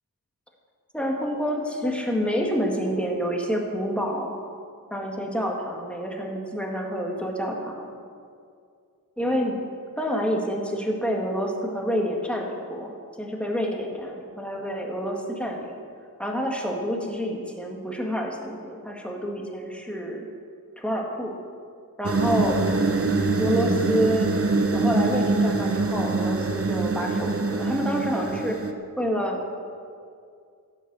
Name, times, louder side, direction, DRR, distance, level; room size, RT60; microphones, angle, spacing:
voice 1, 0.9-4.3 4.9-7.9 9.2-9.6 10.0-15.8 16.2-20.3 20.8-21.4 22.0-22.7 23.4-24.4 24.7-28.6 29.0-29.4, equal, 5° left, 0 dB, 2.0 m, -28 dB
sound 1, 22.0-28.7, right 3 dB, 35° right, 1.1 m, -24 dB
16.0 x 7.2 x 7.6 m, 2.3 s
wide cardioid pair, 105°, 38 cm